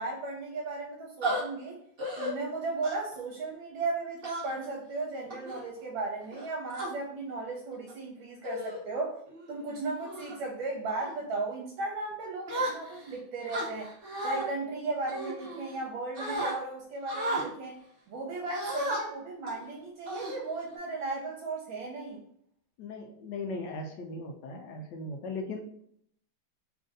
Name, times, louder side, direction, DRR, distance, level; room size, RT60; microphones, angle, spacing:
voice 1, 0.0-1.8 2.2-9.2 9.5-13.9 14.2-17.8 18.1-22.2, right 3 dB, 80° right, -2 dB, 1.4 m, -36 dB
sound 1, 1.2-1.4 2.0-2.3 2.8-3.1 4.2-4.7 5.3-5.6 6.3-6.9 7.7-7.9 8.4-8.8 9.3-9.5 10.0-10.4 10.9-11.1 12.5-13.1 13.5-14.4 15.1-15.9 16.2-16.5 17.1-17.5 18.5-19.0 19.5-19.6 20.1-20.7, right 1 dB, 50° right, 0.6 m, -34 dB
voice 2, 22.8-25.6, left 2 dB, 75° left, 4 dB, 1.1 m, -38 dB
3.4 x 2.5 x 3.8 m, 0.68 s
omnidirectional pair, 2.2 m